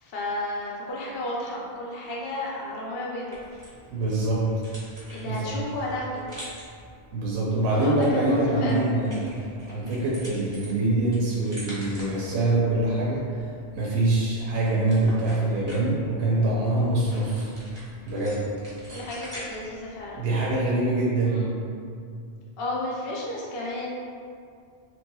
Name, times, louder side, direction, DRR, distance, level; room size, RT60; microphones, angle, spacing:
voice 1, 0.0-3.4 5.1-6.3 7.7-8.9 18.9-20.2 21.2-21.5 22.6-23.9, left 1 dB, 70° left, -4 dB, 0.7 m, -33 dB
sound 1, 3.3-20.7, equal, 30° right, 0.7 m, -46 dB
voice 2, 3.9-4.5 5.2-5.5 7.1-9.3 9.7-17.5 18.1-18.4 20.2-21.5, right 2 dB, 80° right, -6 dB, 0.8 m, -24 dB
3.0 x 2.9 x 2.2 m, 2.3 s
omnidirectional pair, 1.1 m